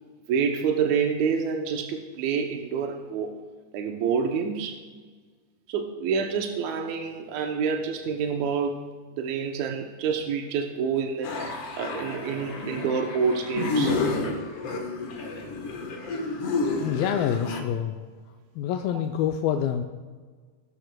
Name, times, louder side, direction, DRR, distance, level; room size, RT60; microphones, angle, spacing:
voice 1, 0.3-3.4 3.7-4.8 5.7-8.9 9.2-14.0, right 6 dB, 75° right, 4 dB, 1.6 m, -27 dB
sound 1, 11.2-17.6, left 3 dB, 60° left, 1.5 m, -30 dB
voice 2, 16.7-18.0 18.6-19.8, left 9 dB, 85° left, 5 dB, 2.4 m, -26 dB
19.5 x 12.5 x 2.2 m, 1.5 s
omnidirectional pair, 4.1 m